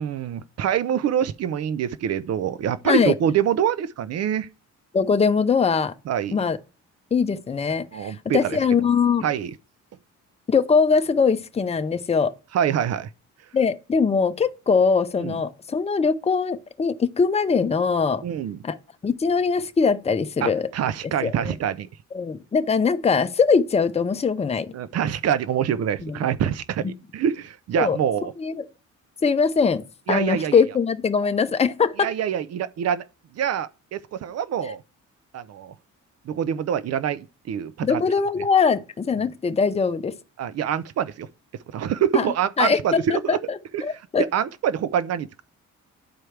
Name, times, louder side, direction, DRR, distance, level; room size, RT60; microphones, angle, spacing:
voice 1, 0.0-4.5 6.1-6.4 7.9-8.6 9.2-9.5 12.5-13.1 15.2-15.3 18.2-18.6 20.4-21.9 24.7-28.3 30.1-30.6 32.0-33.0 33.4-34.8 35.3-35.7 36.3-38.0 40.4-41.3 41.7-43.4 43.7-43.8 44.2-45.4, right 9 dB, 55° right, 0.5 m, -25 dB
voice 2, 4.9-5.9 6.3-6.6 7.1-9.2 10.5-12.3 13.5-18.2 18.6-18.8 19.0-20.7 21.2-21.5 22.1-24.7 26.0-26.2 27.8-28.0 28.4-28.6 29.2-32.1 37.8-40.1 42.1-42.3 42.6-44.3, left 5 dB, 20° left, 0.6 m, -22 dB
11.0 x 4.5 x 3.3 m
cardioid pair, 90°, 30 cm